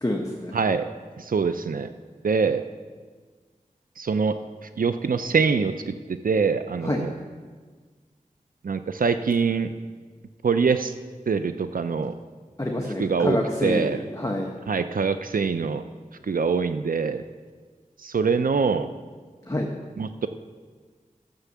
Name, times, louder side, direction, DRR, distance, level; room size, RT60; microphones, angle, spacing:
voice 1, 0.0-0.6 6.8-7.1 12.6-14.5 19.4-19.7, left 1 dB, 25° left, 0 dB, 1.2 m, -27 dB
voice 2, 0.5-0.9 1.2-1.9 2.2-2.6 4.0-4.3 4.8-7.1 8.6-9.7 10.4-10.9 11.3-12.1 13.0-13.4 13.6-14.0 14.7-15.8 16.3-17.2 18.0-18.9 20.0-20.3, right 5 dB, 80° right, 10 dB, 0.5 m, -24 dB
11.5 x 6.7 x 7.2 m, 1.5 s
wide cardioid pair, 55°, 14 cm